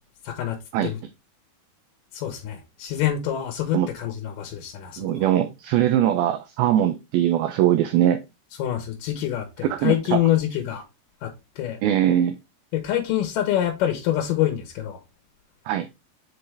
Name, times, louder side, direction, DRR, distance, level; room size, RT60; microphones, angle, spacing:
voice 1, 0.2-1.0 2.1-5.3 8.6-10.8 11.2-11.8 12.7-15.0, left 12 dB, 75° left, 2.1 m, -26 dB
voice 2, 5.0-8.2 9.6-10.2 11.8-12.4 15.7-15.9, right 11 dB, 85° right, 2.1 m, -21 dB
7.7 x 3.9 x 3.3 m
omnidirectional pair, 5.0 m